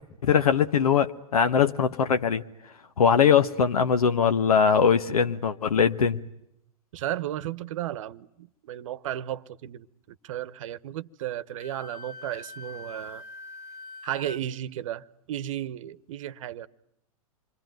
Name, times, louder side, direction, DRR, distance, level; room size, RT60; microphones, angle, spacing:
voice 1, 0.2-2.4 3.0-6.2, left 7 dB, 80° left, 1.1 m, -21 dB
voice 2, 6.9-9.9 10.2-13.2 14.0-16.7, right 12 dB, 60° right, 1.0 m, -34 dB
Wind instrument woodwind instrument, 11.6-14.4, left 2 dB, 65° left, 1.6 m, -43 dB
28.0 x 23.0 x 9.1 m
hypercardioid pair, 105°, 19 cm